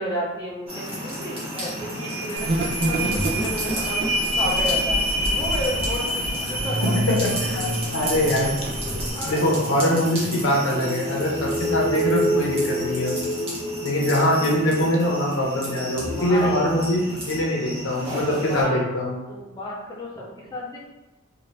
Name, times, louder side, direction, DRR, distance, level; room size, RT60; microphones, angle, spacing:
voice 1, 0.0-5.0 5.3-7.7 9.1-9.5 16.2-16.6 17.5-17.7 18.2-18.8 19.3-20.8, left 1 dB, 20° left, -4 dB, 0.7 m, -32 dB
sound 1, 0.7-18.6, equal, 30° right, 1.1 m, -34 dB
sound 2, 1.7-17.5 18.0-18.1, equal, 70° right, 1.2 m, -28 dB
sound 3, 2.4-9.1, right 1 dB, 50° right, 0.6 m, -29 dB
voice 2, 6.8-7.6 7.9-8.5 9.2-13.1 13.8-19.1, equal, 75° left, -2 dB, 0.7 m, -23 dB
2.8 x 2.6 x 3.1 m, 1.1 s
head